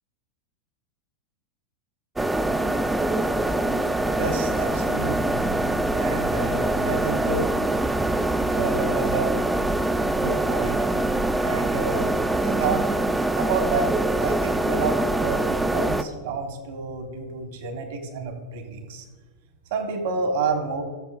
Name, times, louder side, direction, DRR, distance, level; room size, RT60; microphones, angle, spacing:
sound 1, 2.2-16.0, right 2 dB, 5° right, 0.4 m, -24 dB
voice 1, 4.2-5.5 6.0-7.5 8.5-9.4 10.1-10.8 11.4-12.0 12.3-12.9 13.4-19.0 19.7-20.8, right 4 dB, 60° right, 5 dB, 1.3 m, -29 dB
13.5 x 6.6 x 2.5 m, 1.4 s
figure-of-eight pair, 90°, 0 cm